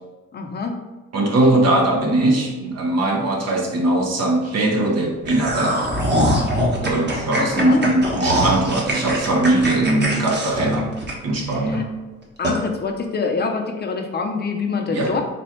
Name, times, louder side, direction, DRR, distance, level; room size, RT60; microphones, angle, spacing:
voice 1, 0.3-0.7 7.0-7.9 11.5-11.8 12.4-15.2, left 4 dB, 35° left, 3 dB, 0.7 m, -26 dB
voice 2, 1.1-5.9 6.8-10.9 11.2-11.9 14.9-15.1, right 2 dB, 55° right, 1 dB, 0.9 m, -20 dB
sound 1, 5.2-11.5 11.9-12.0 12.4-12.6, equal, 35° right, 1.1 m, -22 dB
4.2 x 2.3 x 4.4 m, 1.2 s
cardioid pair, 90°, 30 cm